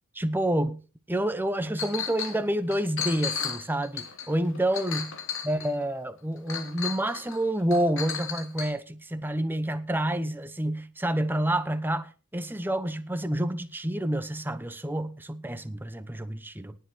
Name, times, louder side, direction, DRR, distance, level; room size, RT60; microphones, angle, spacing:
voice 1, 0.1-0.8 1.1-5.1 5.4-16.7, right 1 dB, 10° right, 1.0 m, -28 dB
Chink clink, 1.8-2.4 2.7-5.8 6.5-7.4 7.7-8.7, left 7 dB, 60° left, 2.9 m, -34 dB
18.5 x 7.9 x 4.7 m
head